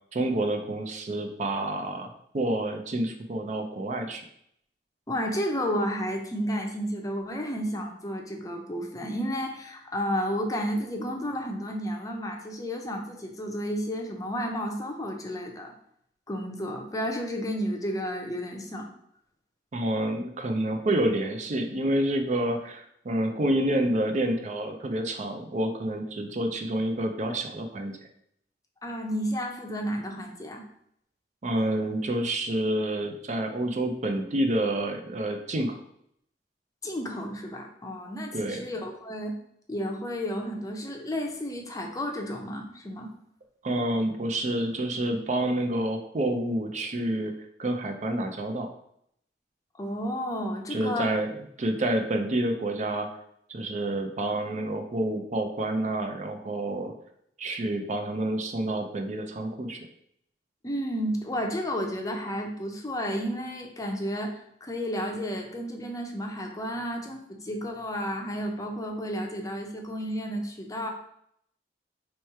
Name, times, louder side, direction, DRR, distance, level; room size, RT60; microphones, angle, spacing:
voice 1, 0.1-4.2 19.7-28.0 31.4-35.7 38.3-38.6 43.6-47.3 47.6-48.7 50.7-51.3 51.6-53.1 53.5-56.9 57.4-59.8, right 1 dB, 45° right, 5 dB, 0.5 m, -28 dB
voice 2, 5.1-15.7 16.3-18.9 28.8-30.6 36.8-39.3 39.7-43.1 49.8-51.2 60.6-70.9, equal, 20° left, 2 dB, 0.6 m, -32 dB
3.2 x 3.1 x 4.6 m, 0.71 s
head